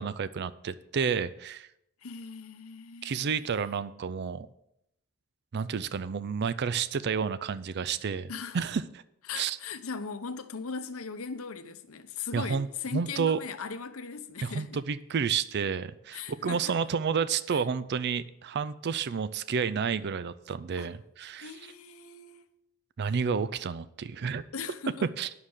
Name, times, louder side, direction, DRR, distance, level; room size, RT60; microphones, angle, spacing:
voice 1, 0.0-1.7 3.0-4.5 5.5-8.8 9.3-9.6 12.3-12.7 12.9-13.4 14.4-21.5 23.0-24.4 25.2-25.3, right 6 dB, 50° right, 0.4 m, -30 dB
voice 2, 2.0-3.3 8.3-8.6 9.3-14.8 16.1-16.8 17.5-17.6 20.8-20.9 21.4-22.4 24.5-25.1, left 5 dB, 70° left, 0.8 m, -39 dB
9.6 x 6.5 x 7.2 m
head